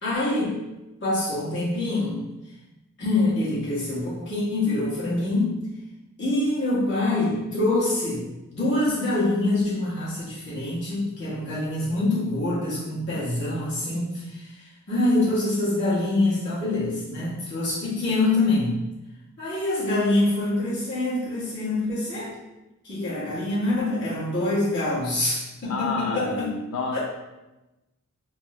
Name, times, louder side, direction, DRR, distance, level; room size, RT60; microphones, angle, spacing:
voice 1, 0.0-0.6 1.0-2.2 3.0-5.7 6.2-8.2 8.5-18.8 19.4-22.3 22.8-26.5 26.9-27.0, left 2 dB, 55° left, -8 dB, 1.4 m, -25 dB
voice 2, 25.7-27.0, left 3 dB, 75° left, -1 dB, 0.4 m, -29 dB
3.5 x 2.6 x 3.2 m, 1.0 s
head